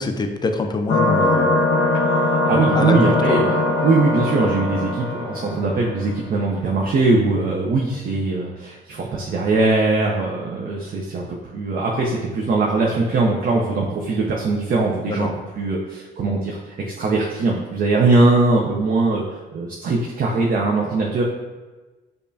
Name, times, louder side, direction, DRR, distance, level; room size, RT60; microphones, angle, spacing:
voice 1, 0.0-1.7 2.7-3.4 15.1-15.3, left 3 dB, 20° left, 6 dB, 0.4 m, -24 dB
sound 1, 0.9-6.1, left 2 dB, 80° left, 0.9 m, -21 dB
voice 2, 2.1-19.2 19.5-21.2, right 3 dB, 45° right, -2 dB, 0.5 m, -21 dB
5.1 x 2.3 x 2.6 m, 1.2 s
cardioid pair, 90°, 20 cm